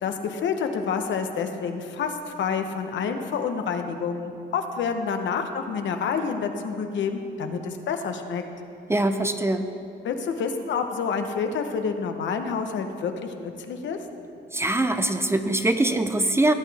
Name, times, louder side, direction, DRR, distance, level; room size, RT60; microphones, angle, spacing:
voice 1, 0.0-8.4 10.0-14.0, left 6 dB, 70° left, 6 dB, 0.9 m, -28 dB
voice 2, 8.9-9.7 14.5-16.5, right 2 dB, 15° right, 8 dB, 0.5 m, -23 dB
17.0 x 8.3 x 3.5 m, 2.6 s
cardioid pair, 90°, 20 cm